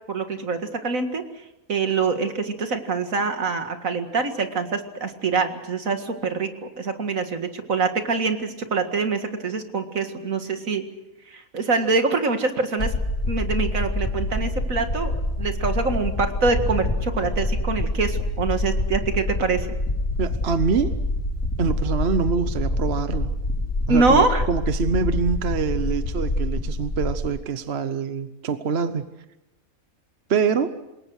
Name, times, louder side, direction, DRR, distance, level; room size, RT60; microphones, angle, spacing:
voice 1, 0.1-1.2 1.7-6.5 6.8-10.8 11.3-12.9 13.3-19.7 23.9-24.4, right 4 dB, 70° right, 7 dB, 2.3 m, -24 dB
sound 1, 12.8-27.3, left 1 dB, 65° left, 4.8 m, -26 dB
voice 2, 20.2-20.9 21.6-23.3 23.9-29.1 30.3-30.7, right 5 dB, 50° right, 10 dB, 1.1 m, -25 dB
27.5 x 21.5 x 6.5 m, 0.97 s
omnidirectional pair, 1.5 m